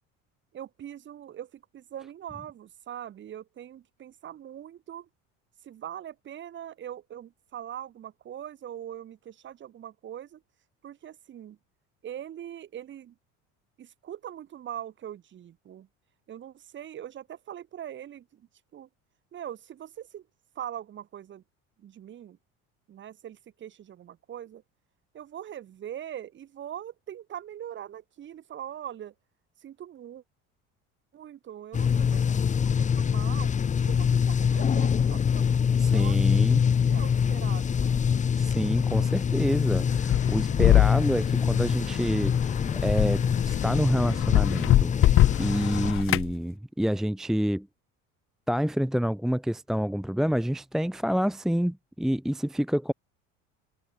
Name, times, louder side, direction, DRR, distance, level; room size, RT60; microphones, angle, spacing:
voice 1, 0.5-5.1 5.6-10.4 10.8-11.6 12.0-13.2 13.8-15.9 16.3-18.9 19.3-20.3 20.6-21.4 21.8-22.4 22.9-24.6 25.1-29.1 29.6-30.2 31.1-33.5 33.9-35.5 35.9-38.0, right 10 dB, 35° right, 7.1 m, -42 dB
sound 1, 31.7-45.9, left 7 dB, 20° left, 2.1 m, -25 dB
voice 2, 35.8-36.7 38.3-47.7 48.5-52.9, equal, ahead, 0.8 m, -28 dB
sound 2, 39.7-46.3, left 14 dB, 40° left, 1.1 m, -24 dB
cardioid pair, 150°, 32 cm